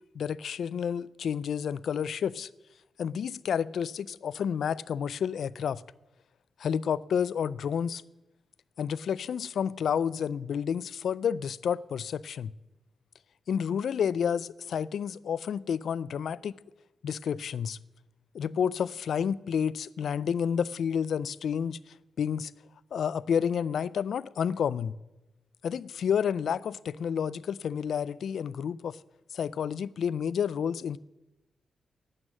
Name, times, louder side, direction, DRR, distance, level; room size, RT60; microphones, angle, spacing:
voice 1, 0.1-2.5 3.0-5.8 6.6-8.0 8.8-12.5 13.5-16.6 17.0-17.8 18.3-21.8 22.2-22.5 22.9-24.9 25.6-29.0 29.3-31.0, left 7 dB, 75° left, 0.3 m, -30 dB
12.5 x 9.1 x 7.5 m
cardioid pair, 105°, 0 cm